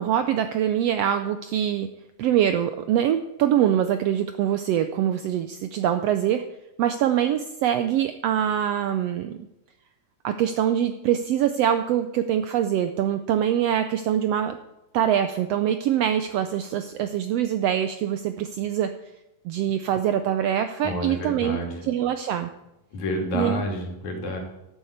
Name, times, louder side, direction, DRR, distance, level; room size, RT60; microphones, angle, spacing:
voice 1, 0.0-1.9 2.2-6.4 6.8-9.4 10.2-14.6 14.9-18.9 19.4-21.6 21.8-22.5 23.3-23.6, right 10 dB, 80° right, 9 dB, 1.5 m, -24 dB
voice 2, 20.8-21.8 22.9-24.4, left 1 dB, 70° left, 2 dB, 3.7 m, -29 dB
12.0 x 7.5 x 8.0 m, 0.92 s
omnidirectional pair, 3.5 m